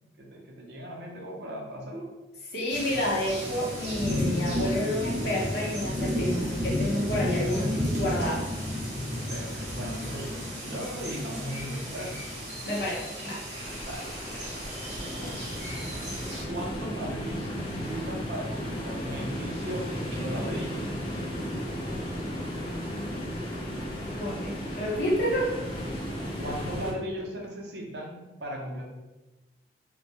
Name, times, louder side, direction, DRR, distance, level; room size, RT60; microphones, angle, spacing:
voice 1, 0.2-2.1 7.6-7.7 9.2-12.2 13.8-14.5 15.0-15.5 16.5-20.8 26.4-28.8, equal, 70° right, -2 dB, 0.5 m, -37 dB
voice 2, 2.5-8.5 12.6-13.4 24.1-25.5, left 1 dB, 65° left, -5 dB, 0.7 m, -29 dB
sound 1, 2.7-16.4, equal, 40° right, 0.8 m, -32 dB
sound 2, 13.6-26.9, equal, 30° left, 0.4 m, -35 dB
2.1 x 2.0 x 2.8 m, 1.1 s
head